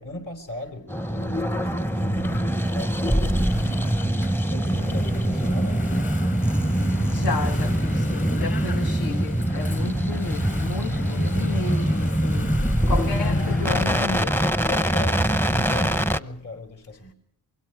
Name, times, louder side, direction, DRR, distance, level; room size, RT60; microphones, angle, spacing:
voice 1, 0.0-3.9 4.4-5.9 10.8-11.0 13.0-13.1 14.7-17.1, left 2 dB, 55° left, 4.3 m, -37 dB
sound 1, 0.9-16.2, right 1 dB, 5° left, 0.8 m, -24 dB
Engine / Mechanisms, 1.9-14.0, left 3 dB, 35° left, 3.2 m, -33 dB
voice 2, 7.1-14.6, left 5 dB, 75° left, 1.6 m, -33 dB
25.0 x 22.5 x 4.8 m
cardioid pair, 85°, 37 cm